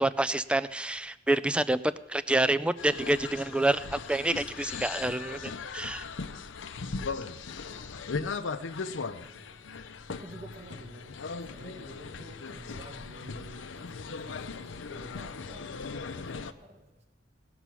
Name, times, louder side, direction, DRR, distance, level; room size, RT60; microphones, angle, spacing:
voice 1, 0.0-6.1, right 2 dB, 5° right, 0.4 m, -28 dB
sound 1, 2.8-16.5, left 4 dB, 75° left, 0.7 m, -38 dB
voice 2, 7.6-8.0 9.2-9.5 10.1-11.1 11.5-15.9 16.1-17.0, right 1 dB, 35° right, 1.9 m, -50 dB
17.5 x 6.9 x 6.2 m
head